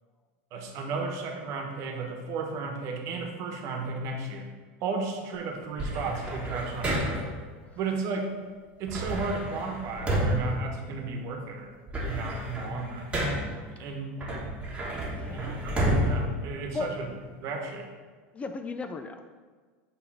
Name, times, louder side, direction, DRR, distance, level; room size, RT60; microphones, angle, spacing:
voice 1, 0.5-4.5 4.8-7.0 7.8-8.3 8.8-11.7 12.0-13.1 13.7-14.1 14.9-17.1 17.4-17.9, right 4 dB, 55° right, 3 dB, 1.2 m, -34 dB
sound 1, 5.8-7.4 8.9-11.3 11.7-13.6 14.2-17.2, equal, 15° right, 1.4 m, -31 dB
voice 2, 15.2-15.6 16.7-16.9 18.3-19.4, left 4 dB, 20° left, 7 dB, 0.4 m, -36 dB
8.4 x 3.3 x 4.7 m, 1.5 s
supercardioid pair, 125°, 6 cm